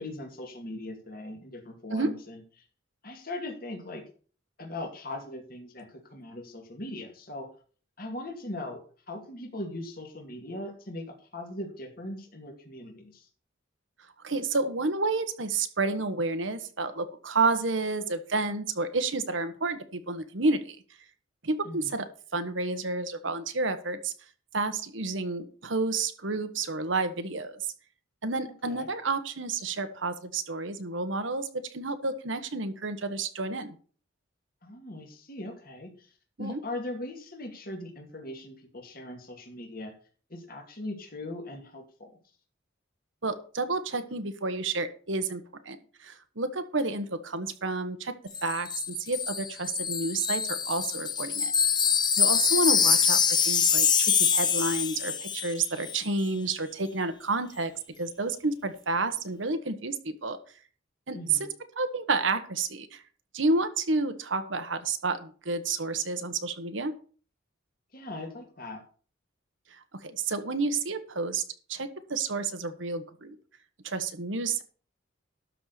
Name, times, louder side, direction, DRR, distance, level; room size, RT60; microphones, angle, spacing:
voice 1, 0.0-2.6 3.0-4.0 4.6-7.5 8.0-13.3 21.6-22.0 28.5-28.9 34.6-36.1 36.4-39.9 40.3-42.2 61.1-61.4 67.9-68.8, left 1 dB, 45° left, 1 dB, 2.4 m, -40 dB
voice 2, 14.2-20.8 21.4-22.1 22.3-24.1 24.5-27.6 28.2-31.5 31.7-33.8 36.4-36.6 43.2-48.1 48.4-51.5 52.2-57.7 58.0-60.4 61.1-61.5 61.8-63.0 63.3-66.9 69.7-71.4 71.7-73.3 73.8-74.6, right 3 dB, 75° right, 9 dB, 1.4 m, -30 dB
Wind chime, 48.3-55.6 55.8-56.0, left 6 dB, 20° left, 0.8 m, -25 dB
12.5 x 4.5 x 6.8 m, 0.41 s
head